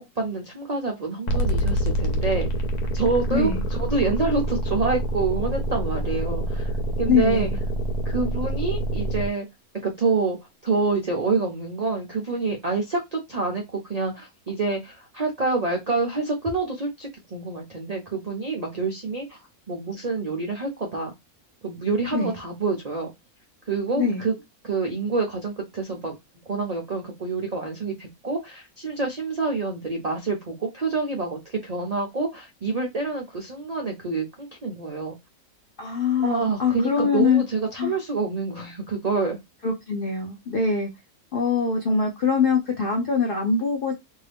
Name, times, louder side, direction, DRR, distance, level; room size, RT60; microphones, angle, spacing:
voice 1, 0.0-2.5 2.9-6.7 7.0-7.5 8.0-9.5 9.8-10.4 10.6-19.4 19.7-21.1 21.6-23.1 23.7-24.3 24.6-26.1 26.5-35.1 36.2-39.4, right 3 dB, 70° right, 0.3 m, -27 dB
sound 1, 1.3-9.3, right 1 dB, 90° left, 1.3 m, -26 dB
voice 2, 3.3-3.6 7.1-7.6 22.1-22.4 24.0-24.3 35.8-37.4 37.8-38.0 39.6-40.9 41.3-43.9, left 5 dB, 65° left, 0.5 m, -23 dB
2.7 x 2.6 x 3.3 m
omnidirectional pair, 1.6 m